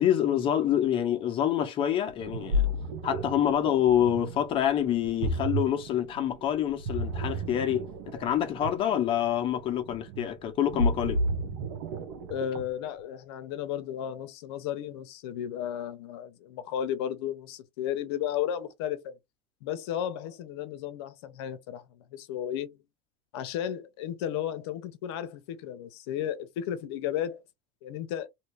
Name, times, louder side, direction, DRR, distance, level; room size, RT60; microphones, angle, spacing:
voice 1, 0.0-2.6 3.0-11.2, left 10 dB, 40° left, 1.0 m, -27 dB
Ocean, 2.1-12.9, equal, 75° right, 1.1 m, -32 dB
voice 2, 12.3-19.2 19.6-22.8 23.3-27.4 27.8-28.3, left 10 dB, 80° left, 0.8 m, -34 dB
2.8 x 2.8 x 3.3 m
supercardioid pair, 130°, 14 cm